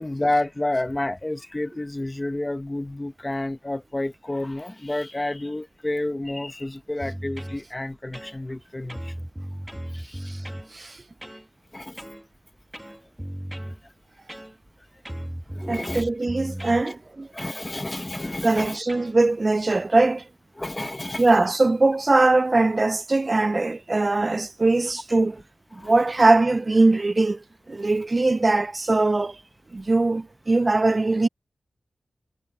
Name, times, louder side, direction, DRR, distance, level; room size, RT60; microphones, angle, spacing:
voice 1, 0.0-9.1 9.9-10.5 11.7-12.0 15.5-16.1 17.3-18.8 20.6-21.3 24.1-24.2 25.7-25.9, left 1 dB, 20° left, 1.3 m, -30 dB
sound 1, 7.0-7.6 8.1-8.6 8.9-10.7 11.2-11.5 12.0-12.2 12.7-13.8 14.3-14.8 15.1-16.9 17.4-17.6 18.1-18.4 18.9-19.1, right 1 dB, 5° right, 1.7 m, -36 dB
voice 2, 15.6-17.3 18.4-20.2 21.2-25.4 25.7-29.4 29.7-31.3, right 2 dB, 30° right, 0.3 m, -21 dB
wide cardioid pair, 110°, 0 cm